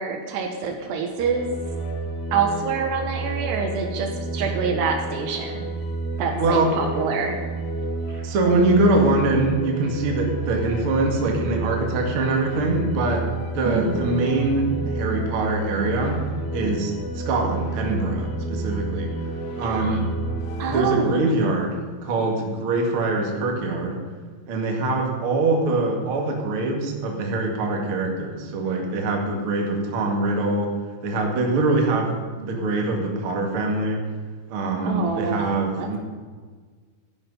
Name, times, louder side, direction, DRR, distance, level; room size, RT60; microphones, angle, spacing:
voice 1, 0.0-1.5 2.3-5.6 6.2-7.4 8.1-8.3 13.6-14.0 19.6-20.0 20.6-21.2 34.8-35.4 35.8-35.9, right 5 dB, 70° right, 4 dB, 3.0 m, -26 dB
sound 1, 1.2-20.8, right 2 dB, 65° left, 3.3 m, -30 dB
voice 2, 6.4-6.8 8.2-13.2 13.5-16.2 16.5-19.1 19.6-20.1 20.7-21.8 22.0-24.0 24.5-30.7 31.0-34.0 34.5-36.0, right 2 dB, 45° right, 1 dB, 1.8 m, -23 dB
14.0 x 10.5 x 5.4 m, 1.5 s
omnidirectional pair, 5.4 m